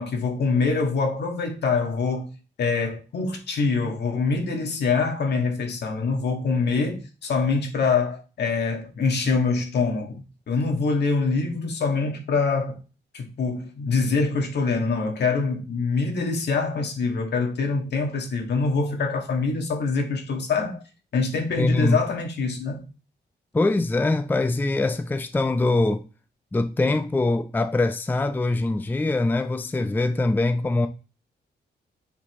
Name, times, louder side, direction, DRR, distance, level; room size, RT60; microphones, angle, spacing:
voice 1, 0.0-2.3 2.6-12.8 13.1-20.8 21.1-22.8, left 4 dB, 70° left, 1.8 m, -24 dB
voice 2, 21.6-22.0 23.5-26.0 26.5-30.9, left 2 dB, 10° left, 0.4 m, -23 dB
7.3 x 4.3 x 3.1 m
cardioid pair, 110°, 18 cm